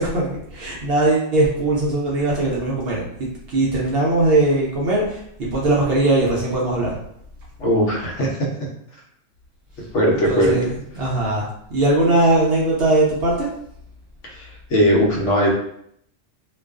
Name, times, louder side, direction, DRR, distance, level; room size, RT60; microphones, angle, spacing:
voice 1, 0.0-3.0 3.5-5.2 5.5-6.9 10.1-13.5, right 2 dB, 65° right, -4 dB, 0.6 m, -20 dB
voice 2, 7.6-8.5 9.9-10.5 14.2-15.5, equal, 70° left, -2 dB, 0.9 m, -19 dB
2.4 x 2.2 x 2.3 m, 0.70 s
omnidirectional pair, 1.3 m